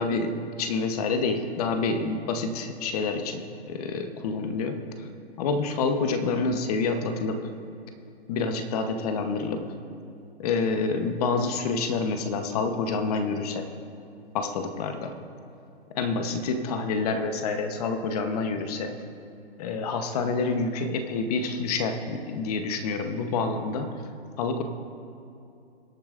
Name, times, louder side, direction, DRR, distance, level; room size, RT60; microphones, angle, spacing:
voice 1, 0.0-5.1 5.4-7.5 8.3-9.7 10.4-13.6 14.3-15.1 16.0-18.9 19.6-24.0 24.4-24.6, left 4 dB, 35° left, 7 dB, 1.0 m, -28 dB
21.5 x 8.6 x 2.5 m, 2.6 s
hypercardioid pair, 150°, 32 cm